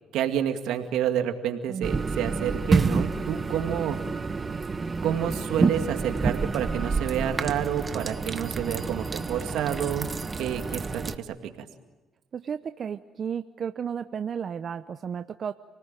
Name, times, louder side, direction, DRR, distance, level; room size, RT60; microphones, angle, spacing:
voice 1, 0.1-4.0 5.0-10.1 10.4-11.7, right 10 dB, 80° right, 6 dB, 2.2 m, -29 dB
sound 1, 1.8-11.2, right 4 dB, 30° right, 1.3 m, -28 dB
Bell, 8.0-10.8, right 2 dB, 5° right, 7.0 m, -54 dB
voice 2, 12.3-15.5, right 7 dB, 50° right, 10 dB, 0.8 m, -33 dB
29.0 x 19.0 x 9.1 m, 1.1 s
cardioid pair, 80°, 0 cm